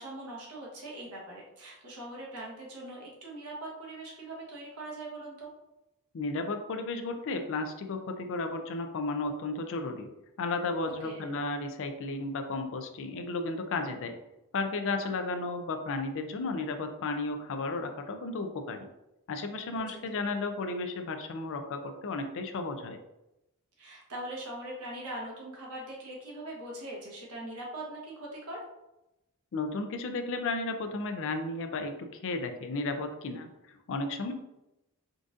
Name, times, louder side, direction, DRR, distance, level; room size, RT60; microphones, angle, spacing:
voice 1, 0.0-5.5 11.0-11.4 19.7-20.4 23.8-28.6, right 1 dB, 80° right, -2 dB, 1.0 m, -42 dB
voice 2, 6.1-10.1 10.4-14.1 14.5-18.8 19.3-23.0 29.5-34.3, left 3 dB, 60° left, 6 dB, 0.4 m, -33 dB
3.8 x 2.5 x 2.5 m, 0.90 s
head